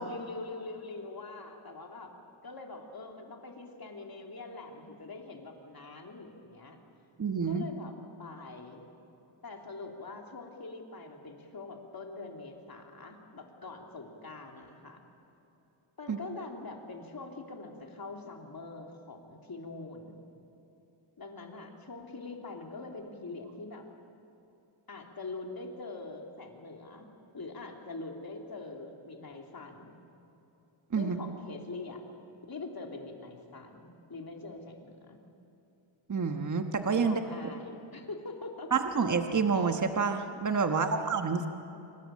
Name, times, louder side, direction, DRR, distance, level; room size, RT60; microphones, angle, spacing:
voice 1, 0.0-2.1 2.4-6.8 7.4-8.8 9.4-15.0 16.0-20.2 21.2-23.9 24.9-27.1 27.3-30.0 30.9-32.0 32.5-35.2 37.0-38.7 40.7-41.0, left 3 dB, 45° left, 2 dB, 3.1 m, -44 dB
voice 2, 7.2-7.6 16.1-16.2 30.9-31.2 36.1-37.2 38.7-41.5, right 5 dB, 35° right, 5 dB, 1.3 m, -28 dB
26.5 x 25.0 x 7.6 m, 2.9 s
wide cardioid pair, 125°, 49 cm